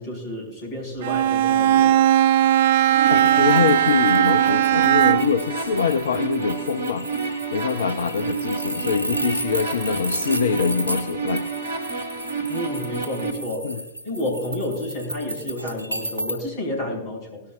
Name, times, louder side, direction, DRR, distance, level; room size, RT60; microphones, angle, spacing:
voice 1, 0.0-2.0 12.5-13.8 14.0-17.4, left 1 dB, 45° left, 0 dB, 5.5 m, -30 dB
Bowed string instrument, 1.0-5.5, right 12 dB, 55° right, 0.4 m, -18 dB
sound 1, 2.9-13.3, right 4 dB, 75° right, 1.5 m, -30 dB
sound 2, 3.1-16.4, right 1 dB, 90° left, 2.6 m, -34 dB
voice 2, 3.1-7.1 7.5-11.4 13.6-13.8, left 6 dB, 65° left, 9 dB, 0.6 m, -24 dB
19.0 x 12.0 x 2.6 m, 0.93 s
figure-of-eight pair, 90°, 0 cm